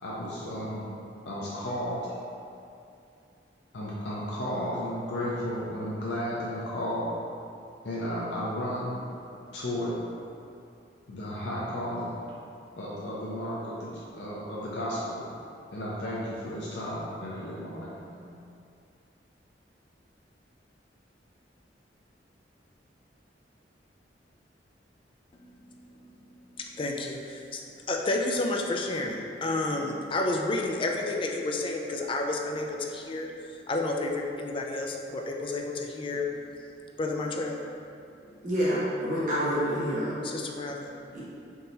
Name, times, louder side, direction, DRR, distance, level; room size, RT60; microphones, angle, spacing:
voice 1, 0.0-0.9 1.2-2.0 3.7-7.1 7.8-9.0 9.5-9.9 11.1-12.2 12.8-15.2 15.7-18.3, equal, 75° left, -7 dB, 0.6 m, -33 dB
voice 2, 25.7-27.6 27.9-36.3 37.0-37.7 38.2-38.5 40.2-41.1, left 2 dB, 30° left, 1 dB, 0.3 m, -31 dB
voice 3, 38.4-40.2 41.1-41.2, equal, 45° right, -10 dB, 1.2 m, -27 dB
3.7 x 2.8 x 4.0 m, 2.6 s
head